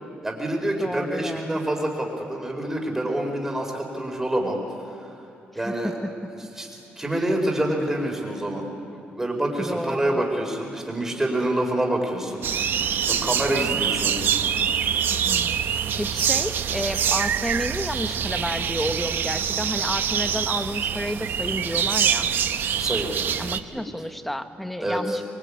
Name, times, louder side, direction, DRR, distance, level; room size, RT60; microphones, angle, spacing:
voice 1, 0.2-4.6 4.9-5.0 5.5-5.9 6.5-12.4 13.0-14.2 22.8-23.1 23.7-23.8 24.8-25.2, right 1 dB, 10° right, 1 dB, 4.6 m, -27 dB
voice 2, 0.8-1.6 5.5-6.1 7.1-7.3 9.6-10.2 15.1-15.7 16.0-22.3 23.4-25.3, equal, 5° left, 8 dB, 1.0 m, -31 dB
sound 1, 12.4-23.6, right 8 dB, 60° right, 0.9 m, -25 dB
25.0 x 23.5 x 8.6 m, 2.6 s
cardioid pair, 130°, 4 cm